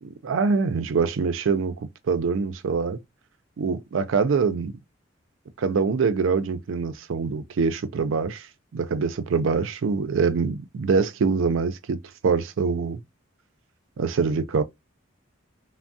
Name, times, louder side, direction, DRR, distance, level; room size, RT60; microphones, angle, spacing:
voice 1, 0.2-1.8 2.1-3.0 3.6-4.7 5.6-8.5 8.7-12.0 12.2-13.0 14.0-14.6, right 5 dB, 70° right, 0.4 m, -24 dB
3.3 x 2.0 x 2.5 m
head